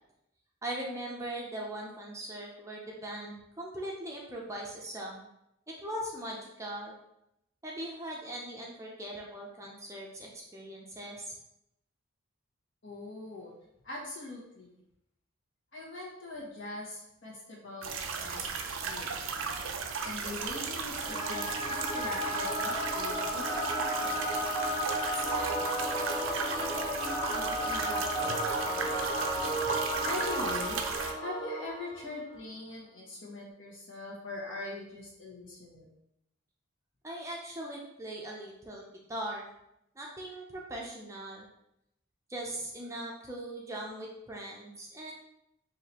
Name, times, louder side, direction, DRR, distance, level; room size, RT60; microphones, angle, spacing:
voice 1, 0.6-5.2 5.7-6.9 7.6-11.3 37.0-39.5 40.0-41.4 42.3-45.1, right 1 dB, 15° right, -2 dB, 0.5 m, -40 dB
voice 2, 12.8-13.5 13.8-14.7 15.7-18.5 18.8-19.2 20.0-24.4 25.2-25.6 26.0-29.3 30.0-30.8 31.2-35.9, left 2 dB, 65° left, -4 dB, 1.3 m, -42 dB
sound 1, 17.8-31.1, right 5 dB, 75° right, 0.5 m, -36 dB
Singing / Musical instrument, 20.9-32.2, equal, 20° left, 0.7 m, -33 dB
4.9 x 2.7 x 2.9 m, 0.82 s
head